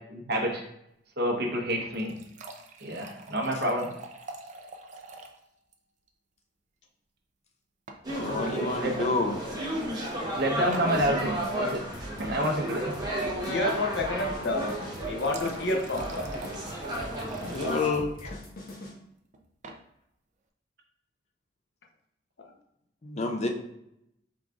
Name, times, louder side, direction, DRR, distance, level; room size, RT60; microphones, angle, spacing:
voice 1, 0.1-0.6 1.2-2.2 2.8-3.9 8.3-9.1 10.3-11.8 12.2-12.9, equal, 60° right, 1 dB, 0.9 m, -28 dB
sound 1, 1.7-5.4 5.7-5.8 6.1-6.2 7.9-8.2 9.2-9.4 10.7-11.0 14.8-17.9 19.3-19.8, right 2 dB, 40° right, 0.5 m, -43 dB
sound 2, 8.0-17.9, right 1 dB, 25° right, 0.9 m, -33 dB
voice 2, 8.2-9.3 17.5-18.3 23.0-23.5, left 3 dB, 40° left, 3 dB, 0.5 m, -29 dB
sound 3, 10.9-18.9, left 1 dB, 55° left, 1.0 m, -43 dB
voice 3, 13.3-14.7 15.0-16.3 18.2-18.3, left 2 dB, 75° left, 1 dB, 0.8 m, -30 dB
4.8 x 3.9 x 2.3 m, 0.79 s
head